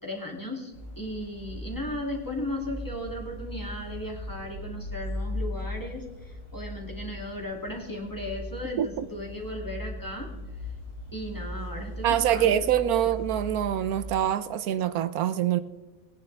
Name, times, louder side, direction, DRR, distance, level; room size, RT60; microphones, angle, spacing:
voice 1, 0.0-10.3 11.1-12.6, left 1 dB, 15° left, -1 dB, 2.3 m, -36 dB
sound 1, 0.7-14.1, left 1 dB, 75° left, 4.3 m, -38 dB
voice 2, 12.0-15.6, right 10 dB, 80° right, 13 dB, 1.1 m, -25 dB
19.0 x 10.5 x 3.3 m, 1.2 s
omnidirectional pair, 1.6 m